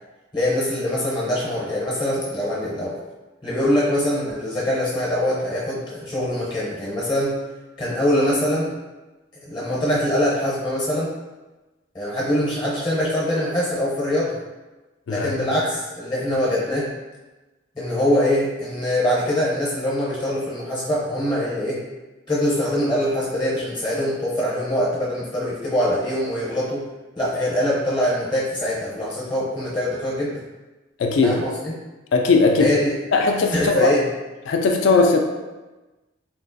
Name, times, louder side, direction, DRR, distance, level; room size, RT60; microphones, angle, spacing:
voice 1, 0.3-3.0 3.4-7.4 7.8-8.7 9.5-11.1 11.9-14.4 15.1-16.9 17.8-21.8 22.3-26.9 27.2-30.4 31.2-31.7 32.6-32.9 33.5-34.1, left 1 dB, 25° left, -6 dB, 0.6 m, -23 dB
voice 2, 15.1-15.5 31.0-31.4 32.1-32.7 33.1-33.9 34.5-35.2, left 3 dB, 75° left, 3 dB, 0.3 m, -18 dB
3.7 x 2.4 x 2.5 m, 1.1 s
head